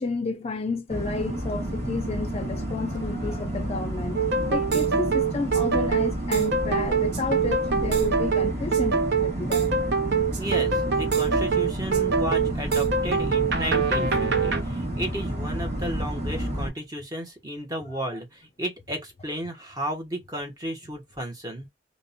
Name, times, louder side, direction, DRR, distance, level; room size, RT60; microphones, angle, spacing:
voice 1, 0.0-4.2 4.5-9.7 18.1-18.2, left 3 dB, 35° left, 0.5 m, -31 dB
sound 1, 0.9-16.7, right 1 dB, 35° right, 1.2 m, -31 dB
sound 2, 4.2-14.6, right 5 dB, 60° right, 0.5 m, -24 dB
voice 2, 10.3-21.7, right 1 dB, 20° right, 0.8 m, -33 dB
2.5 x 2.1 x 2.6 m
head